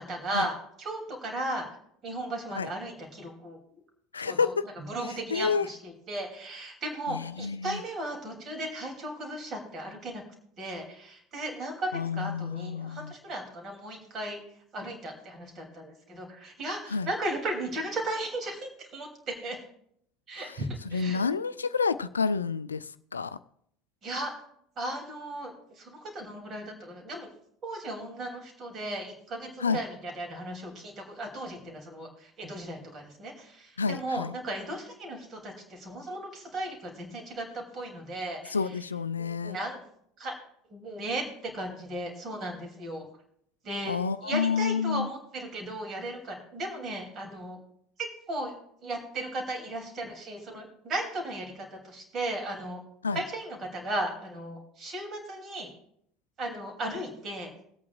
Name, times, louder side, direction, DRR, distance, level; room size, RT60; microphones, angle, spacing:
voice 1, 0.0-1.7 2.0-3.8 4.2-10.2 10.6-14.4 14.7-19.6 20.3-21.2 24.0-24.3 24.8-27.3 27.6-38.8 39.2-39.8 40.2-40.4 40.7-43.0 43.6-47.6 48.0-48.5 48.8-52.8 53.1-55.7 56.4-57.5, right 1 dB, 35° right, 2.8 m, -36 dB
voice 2, 4.1-4.6 5.3-5.7 7.1-7.8 11.9-13.1 16.9-17.1 20.9-23.4 29.6-29.8 33.8-34.3 38.5-39.6 43.9-45.1 53.0-53.2, left 5 dB, 80° left, 0.3 m, -29 dB
21.0 x 8.5 x 2.4 m
figure-of-eight pair, 70°, 0 cm